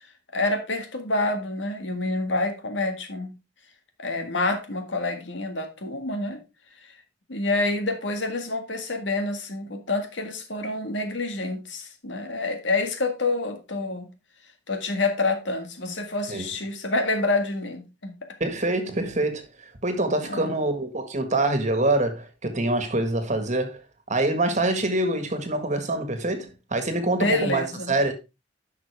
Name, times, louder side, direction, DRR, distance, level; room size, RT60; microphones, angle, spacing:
voice 1, 0.3-3.3 4.0-6.4 6.8-6.9 7.3-14.1 14.7-18.1 20.2-20.6 27.1-27.9, left 2 dB, 75° left, 1.9 m, -27 dB
voice 2, 18.4-19.5 19.8-23.8 24.1-28.1, right 2 dB, 40° right, 1.7 m, -25 dB
11.0 x 6.0 x 3.4 m
head